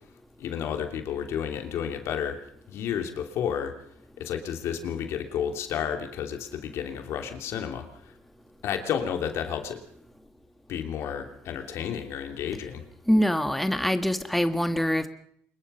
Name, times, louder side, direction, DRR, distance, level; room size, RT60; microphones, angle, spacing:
voice 1, 0.4-2.4 2.7-3.7 4.2-8.1 8.6-9.8 10.7-12.8, left 8 dB, 70° left, 6 dB, 3.0 m, -31 dB
voice 2, 13.1-15.1, equal, 5° left, 8 dB, 1.6 m, -24 dB
25.5 x 22.0 x 5.6 m, 0.67 s
cardioid pair, 95°, 5 cm